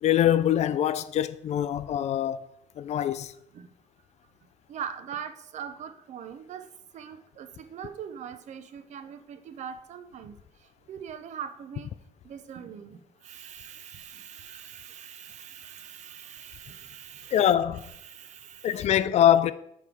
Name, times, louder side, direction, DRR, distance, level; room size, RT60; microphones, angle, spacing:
voice 1, 0.0-2.5 2.8-3.3 17.3-17.9 18.6-19.5, left 11 dB, 55° left, 0.4 m, -23 dB
voice 2, 4.7-6.7 6.9-10.3 10.9-11.9 12.2-17.5 18.0-18.9, right 8 dB, 60° right, 0.8 m, -42 dB
7.0 x 5.6 x 4.7 m
cardioid pair, 120°, 14 cm